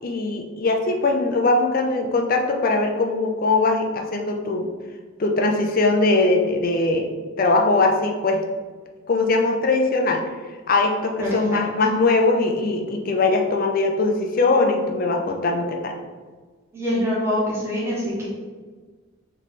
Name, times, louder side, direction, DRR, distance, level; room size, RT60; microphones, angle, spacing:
voice 1, 0.0-4.7 5.2-7.1 7.4-8.4 9.1-10.2 10.7-15.9, left 3 dB, 40° left, 3 dB, 0.5 m, -21 dB
voice 2, 11.2-11.6 16.7-18.3, left 1 dB, 10° right, -7 dB, 1.2 m, -25 dB
3.4 x 3.2 x 4.1 m, 1.4 s
head